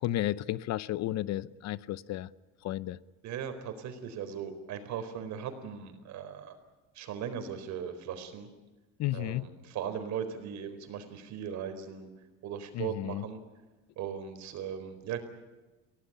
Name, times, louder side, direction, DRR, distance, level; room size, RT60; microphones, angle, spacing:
voice 1, 0.0-2.3 2.6-3.0 9.0-9.5 12.7-13.2, left 14 dB, 55° left, 18 dB, 0.7 m, -33 dB
voice 2, 3.2-6.6 6.9-8.5 9.1-12.1 12.4-13.4 14.0-15.2, right 8 dB, 60° right, 8 dB, 4.4 m, -38 dB
24.5 x 17.5 x 9.9 m, 1.2 s
cardioid pair, 125°, 32 cm